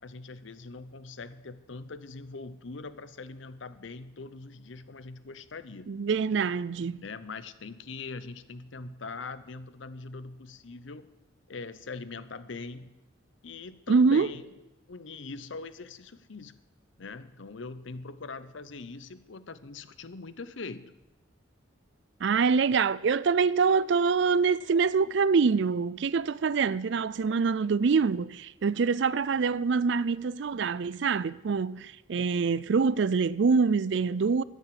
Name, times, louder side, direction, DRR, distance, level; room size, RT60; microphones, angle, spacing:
voice 1, 0.0-5.9 7.0-11.1 11.5-13.0 13.4-14.5 14.9-16.6 17.0-20.9, left 3 dB, 70° left, 0.7 m, -42 dB
voice 2, 5.9-7.0 13.9-14.3 22.2-34.4, right 5 dB, 60° right, 0.4 m, -25 dB
14.0 x 9.1 x 7.6 m
head